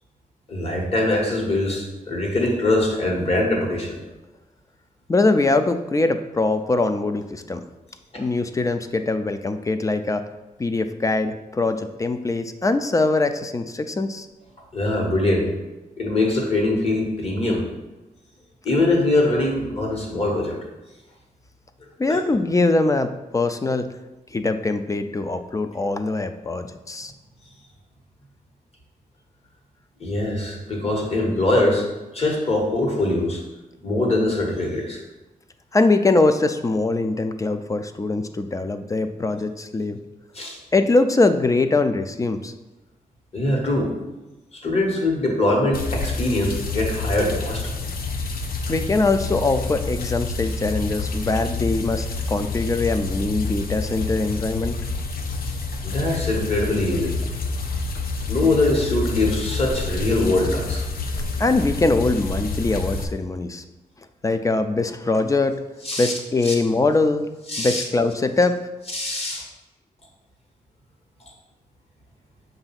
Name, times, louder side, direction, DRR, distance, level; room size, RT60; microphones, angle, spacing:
voice 1, 0.5-4.0 8.1-8.3 14.7-15.5 16.0-17.6 18.6-20.6 22.1-22.2 30.0-31.9 32.1-33.4 33.8-35.0 40.3-40.6 43.3-43.9 44.5-47.8 55.8-57.2 58.3-60.8 65.8-66.1 66.4-66.5 67.5-67.8 68.9-69.4, left 2 dB, 40° left, 0 dB, 1.4 m, -22 dB
voice 2, 5.1-7.6 8.2-10.2 10.6-14.3 22.0-23.9 24.3-27.1 35.7-40.0 40.7-42.5 48.7-54.7 61.4-63.6 64.2-65.6 65.9-67.2 67.6-68.6, left 3 dB, 20° left, 8 dB, 0.3 m, -22 dB
sound 1, 45.7-63.0, left 3 dB, 75° left, 0.6 m, -28 dB
6.9 x 2.6 x 5.7 m, 1.1 s
wide cardioid pair, 150°, 15 cm